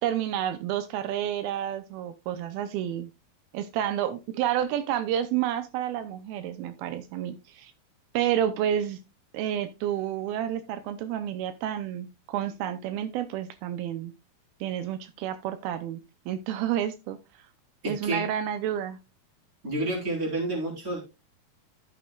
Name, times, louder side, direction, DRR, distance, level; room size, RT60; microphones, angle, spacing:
voice 1, 0.0-3.1 3.5-7.7 8.1-9.0 9.3-14.1 14.6-16.0 16.3-17.2 17.9-19.0, right 10 dB, 85° right, 10 dB, 2.6 m, -30 dB
voice 2, 17.8-18.2 19.6-21.0, right 2 dB, 25° right, -1 dB, 4.0 m, -29 dB
13.5 x 6.8 x 2.3 m, 0.25 s
omnidirectional pair, 4.3 m